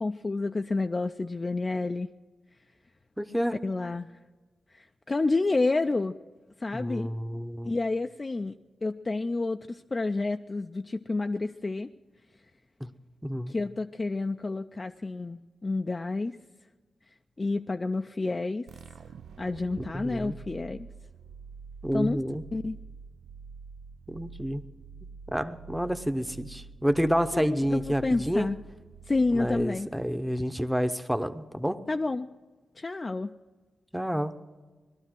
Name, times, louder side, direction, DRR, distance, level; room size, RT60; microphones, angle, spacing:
voice 1, 0.0-2.1 3.6-4.1 4.7-6.2 6.6-7.1 7.6-11.9 13.5-16.4 17.4-18.7 19.4-20.9 21.9-22.2 22.5-22.8 27.3-28.6 29.1-29.9 31.9-32.3 32.8-33.3, left 3 dB, 35° left, 6 dB, 0.4 m, -29 dB
voice 2, 3.2-3.6 6.7-7.7 12.8-12.9 13.2-13.5 19.9-20.4 21.8-22.4 24.1-24.6 25.3-28.5 29.3-31.8 33.9-34.4, equal, 5° right, 9 dB, 0.8 m, -29 dB
sound 1, 18.7-30.1, right 5 dB, 85° right, 0.4 m, -47 dB
18.5 x 12.0 x 6.2 m, 1.3 s
cardioid pair, 60°, 0 cm